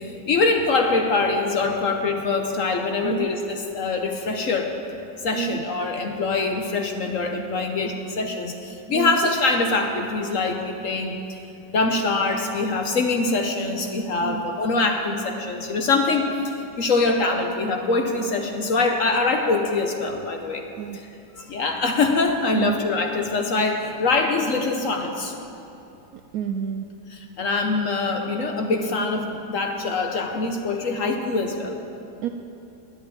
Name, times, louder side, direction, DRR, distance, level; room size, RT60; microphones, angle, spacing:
voice 1, 0.0-4.7 5.2-11.4 11.7-20.6 20.9-21.1 21.4-25.3 27.4-31.8, left 3 dB, 55° left, 4 dB, 1.0 m, -24 dB
voice 2, 26.1-26.9 32.2-32.3, right 10 dB, 70° right, 6 dB, 0.8 m, -28 dB
10.5 x 8.7 x 8.5 m, 2.8 s
omnidirectional pair, 2.0 m